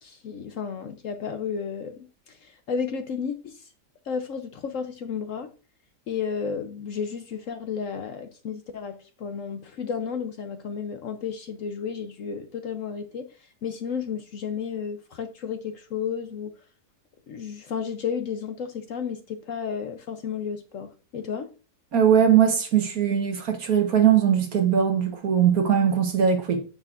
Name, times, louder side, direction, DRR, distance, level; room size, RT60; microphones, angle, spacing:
voice 1, 0.0-2.0 2.3-3.7 4.0-5.5 6.1-13.3 13.6-16.5 17.3-21.5, left 6 dB, 60° left, 0.9 m, -32 dB
voice 2, 21.9-26.6, right 8 dB, 60° right, 1.6 m, -20 dB
8.8 x 6.6 x 2.5 m
omnidirectional pair, 1.8 m